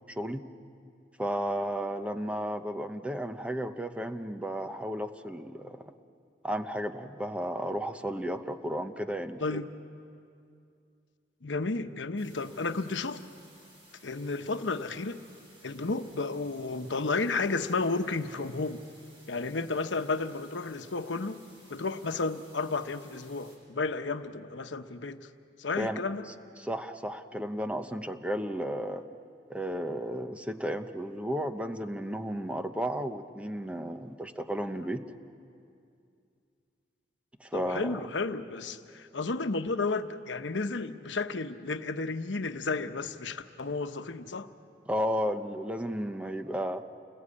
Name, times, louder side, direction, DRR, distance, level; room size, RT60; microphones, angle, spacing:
voice 1, 0.1-0.4 1.2-5.9 6.4-9.6 25.8-26.0 26.6-29.0 29.5-35.0 37.4-38.0 44.9-46.8, equal, 5° right, 8 dB, 0.9 m, -33 dB
voice 2, 11.4-13.2 14.0-15.2 15.6-18.8 19.3-21.4 21.7-25.2 25.6-26.3 37.5-44.5, left 3 dB, 90° left, 9 dB, 1.0 m, -32 dB
sound 1, 12.2-23.6, right 1 dB, 30° right, 7.3 m, -58 dB
29.5 x 21.0 x 8.6 m, 2.5 s
head